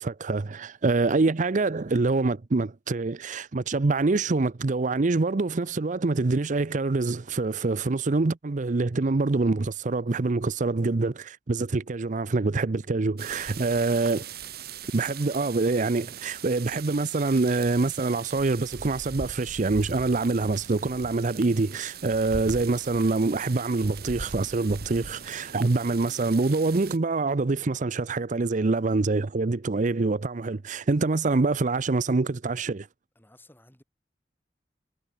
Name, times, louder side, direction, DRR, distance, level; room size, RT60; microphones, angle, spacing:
voice 1, 0.0-14.2 14.9-32.9, right 3 dB, 45° right, 0.6 m, -25 dB
sound 1, 13.2-27.0, right 6 dB, 60° right, 2.2 m, -41 dB
voice 2, 33.1-33.8, left 1 dB, 10° left, 4.8 m, -56 dB
head